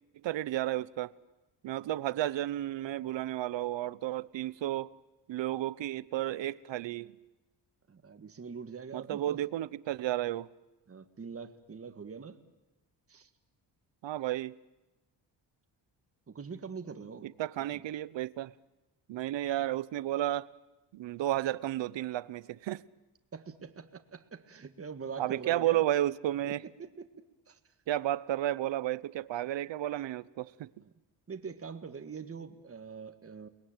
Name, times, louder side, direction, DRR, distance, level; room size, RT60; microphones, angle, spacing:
voice 1, 0.2-1.1 1.6-4.9 5.3-7.1 8.9-10.5 14.0-14.5 17.2-18.5 19.1-20.5 20.9-22.8 25.2-26.6 27.9-30.7, right 13 dB, 85° right, 0.9 m, -32 dB
voice 2, 7.9-9.4 10.9-12.4 13.1-13.3 16.3-17.3 17.7-17.8 23.3-25.8 26.4-27.1 27.5-27.6 30.8-30.9 31.3-33.5, right 5 dB, 30° right, 1.8 m, -43 dB
30.0 x 20.5 x 9.0 m
cardioid pair, 130°, 43 cm